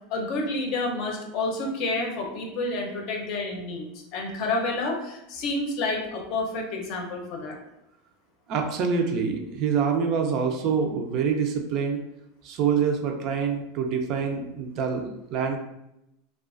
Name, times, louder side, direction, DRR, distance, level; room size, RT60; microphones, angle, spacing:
voice 1, 0.1-7.6, left 2 dB, 55° left, 1 dB, 0.6 m, -29 dB
voice 2, 8.5-12.0 12.4-15.6, right 6 dB, 45° right, 3 dB, 0.4 m, -26 dB
2.3 x 2.2 x 2.4 m, 0.85 s
supercardioid pair, 135°, 0 cm